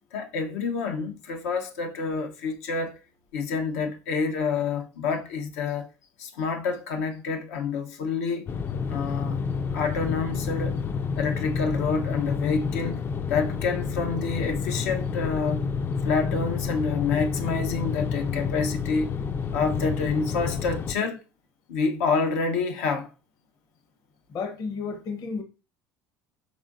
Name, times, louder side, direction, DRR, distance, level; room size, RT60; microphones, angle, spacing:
voice 1, 0.1-3.0 3.3-5.9 6.2-8.5 8.9-9.4 9.7-10.8 11.2-13.0 13.3-15.7 16.0-19.1 19.5-21.2 21.7-23.1, left 5 dB, 85° left, 0.8 m, -28 dB
sound 1, 8.5-20.9, left 6 dB, 30° left, 0.3 m, -29 dB
voice 2, 24.3-25.4, left 5 dB, 55° left, 0.9 m, -32 dB
5.2 x 3.6 x 2.6 m
supercardioid pair, 100°, 8 cm